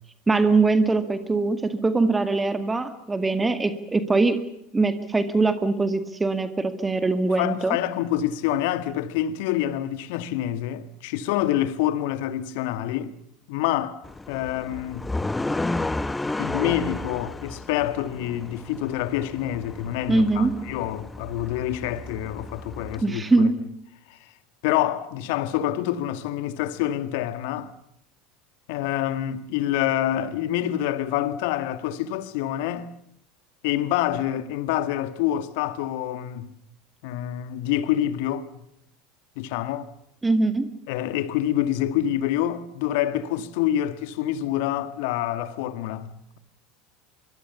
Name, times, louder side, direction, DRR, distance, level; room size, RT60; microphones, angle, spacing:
voice 1, 0.3-4.4 4.7-7.8 20.1-20.5 23.0-23.6 40.2-40.7, right 3 dB, 15° right, 1.9 m, -22 dB
voice 2, 7.4-13.1 13.5-14.0 14.3-15.1 16.4-23.5 24.1-24.2 24.6-27.7 28.7-32.9 33.6-36.5 37.0-38.5 39.3-39.9 40.9-46.4, left 12 dB, 60° left, 1.7 m, -27 dB
sound 1, 14.0-23.0, left 2 dB, 10° left, 1.0 m, -32 dB
25.0 x 24.0 x 7.0 m
figure-of-eight pair, 75°, 0 cm